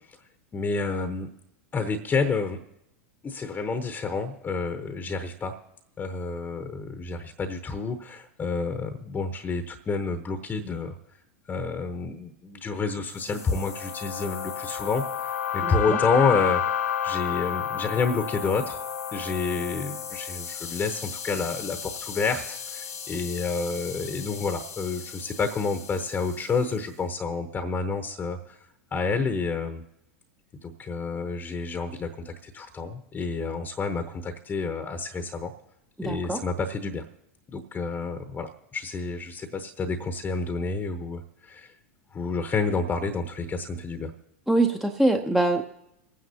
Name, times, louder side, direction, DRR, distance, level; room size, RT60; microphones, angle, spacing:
voice 1, 0.5-1.3 1.7-2.6 3.2-5.6 6.0-11.0 11.5-16.6 17.0-18.8 19.1-28.6 28.9-29.8 30.6-35.5 36.0-37.1 37.5-41.7 42.1-44.1, left 4 dB, 20° left, 7 dB, 0.9 m, -29 dB
sound 1, 13.2-26.5, left 9 dB, 80° left, 1.0 m, -32 dB
voice 2, 15.6-16.0 36.0-36.4 44.5-45.6, right 2 dB, 5° right, 4 dB, 0.7 m, -24 dB
27.5 x 9.5 x 2.8 m, 0.81 s
hypercardioid pair, 95°, 8 cm